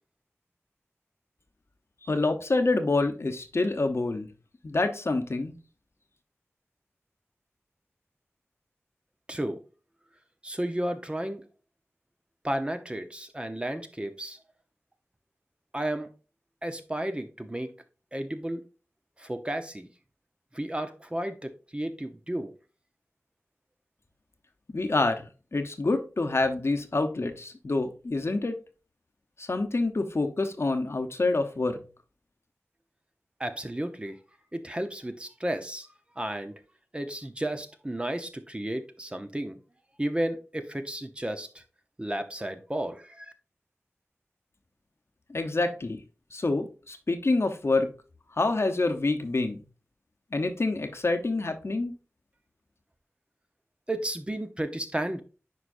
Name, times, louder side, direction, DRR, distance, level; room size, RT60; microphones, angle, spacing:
voice 1, 2.0-4.3 4.6-5.6 24.7-28.6 29.4-31.8 45.3-46.0 46.3-47.9 48.3-49.6 50.3-52.0, left 2 dB, 60° left, 0.9 m, -27 dB
voice 2, 9.3-9.6 10.4-11.5 12.4-14.4 15.7-16.1 16.6-17.7 18.1-18.6 19.2-19.9 20.5-22.5 33.4-34.2 34.5-35.9 36.2-36.6 36.9-39.6 40.0-41.6 42.0-43.3 53.9-55.2, right 1 dB, 20° right, 0.8 m, -33 dB
9.6 x 4.8 x 2.6 m
wide cardioid pair, 60°, 5 cm